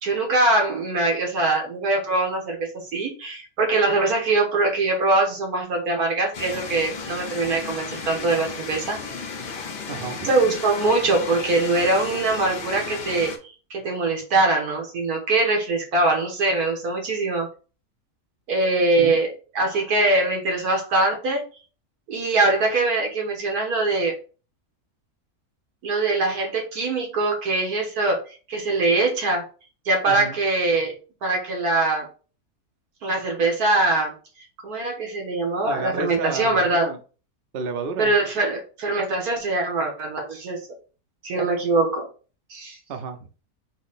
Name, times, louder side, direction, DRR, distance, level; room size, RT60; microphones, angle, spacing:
voice 1, 0.0-9.0 10.2-17.5 18.5-19.3 19.5-21.5 22.1-24.1 25.8-29.4 29.8-30.9 31.2-32.1 33.0-34.1 34.6-36.9 38.0-40.6 41.2-42.1 42.5-42.8, right 2 dB, 90° right, 1 dB, 1.8 m, -22 dB
sound 1, 6.3-13.4, left 5 dB, 50° left, 0.7 m, -34 dB
voice 2, 9.9-10.3 19.0-19.2 30.1-30.4 35.6-37.0 37.5-38.1 42.9-43.3, right 4 dB, 55° right, 6 dB, 0.7 m, -31 dB
4.0 x 2.8 x 4.1 m, 0.36 s
omnidirectional pair, 1.6 m